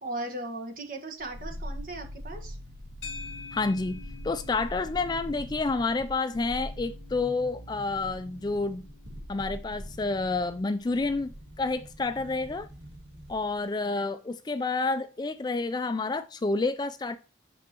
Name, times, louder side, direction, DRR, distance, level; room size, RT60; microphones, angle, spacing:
voice 1, 0.0-2.6, right 2 dB, 45° right, 1.3 m, -37 dB
sound 1, 1.2-13.6 13.8-13.9, equal, 70° right, 1.7 m, -43 dB
sound 2, 3.0-11.4, left 5 dB, 60° left, 1.5 m, -49 dB
voice 2, 3.5-4.0 4.2-8.8 9.3-11.3 11.6-12.7 13.3-17.2, left 3 dB, 20° left, 0.3 m, -29 dB
8.1 x 4.6 x 3.0 m
head